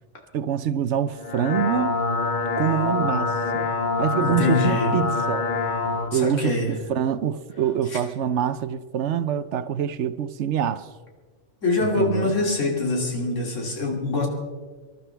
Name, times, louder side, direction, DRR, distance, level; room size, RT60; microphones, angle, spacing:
voice 1, 0.3-2.0 2.6-3.7 4.0-5.5 6.1-10.9 11.8-12.3, right 9 dB, 70° right, 0.9 m, -25 dB
sound 1, 1.1-6.1, left 3 dB, 40° left, 1.3 m, -25 dB
voice 2, 4.2-5.0 6.1-6.7 7.9-8.0 11.6-14.3, left 3 dB, 85° left, 3.1 m, -24 dB
25.0 x 12.0 x 3.4 m
omnidirectional pair, 1.3 m